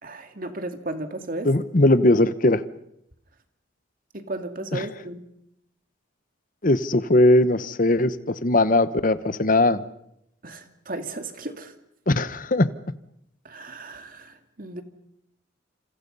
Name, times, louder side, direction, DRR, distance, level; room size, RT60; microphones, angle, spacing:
voice 1, 0.0-1.5 4.1-5.2 10.4-11.7 13.4-14.8, right 2 dB, 45° right, 7 dB, 2.4 m, -35 dB
voice 2, 1.4-2.6 4.7-4.8 6.6-9.8 12.1-12.7, left 1 dB, 45° left, 14 dB, 1.0 m, -19 dB
28.0 x 27.5 x 5.5 m, 0.75 s
head